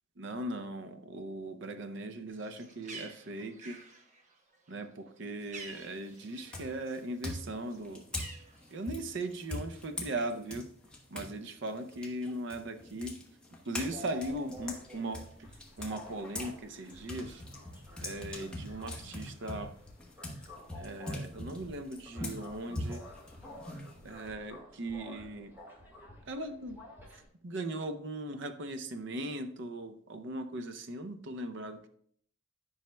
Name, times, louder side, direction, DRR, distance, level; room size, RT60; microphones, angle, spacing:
voice 1, 0.2-3.8 4.7-8.0 8.7-10.7 11.1-13.2 13.7-15.5 15.8-17.4 18.0-19.7 20.8-23.0 24.0-25.5 26.3-26.8 27.1-31.9, right 1 dB, 65° right, 9 dB, 0.6 m, -39 dB
Bird, 2.3-6.9 7.2-9.1, right 4 dB, 40° right, 1.0 m, -50 dB
sound 1, 5.6-6.0 6.5-11.3 11.7-16.5 16.9-24.3, left 1 dB, 5° left, 1.1 m, -42 dB
sound 2, 13.8-27.2, left 1 dB, 10° right, 1.8 m, -51 dB
10.5 x 5.5 x 2.2 m, 0.63 s
head